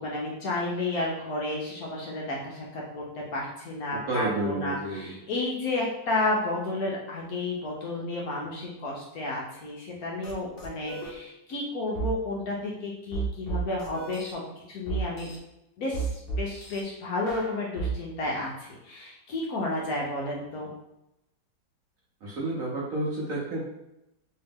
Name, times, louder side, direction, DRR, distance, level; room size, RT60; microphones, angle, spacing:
voice 1, 0.0-14.4 14.7-15.3 15.8-20.7, left 2 dB, 65° left, -3 dB, 1.0 m, -32 dB
voice 2, 4.1-5.2 22.2-23.6, right 1 dB, 60° right, -5 dB, 0.9 m, -30 dB
sound 1, 10.2-10.3 10.6-11.1 11.9-12.1 13.1-14.3 14.9-15.4 15.9-16.8 17.3-17.9, right 5 dB, 80° left, 0.5 m, -32 dB
3.2 x 2.8 x 3.4 m, 0.87 s
omnidirectional pair, 2.0 m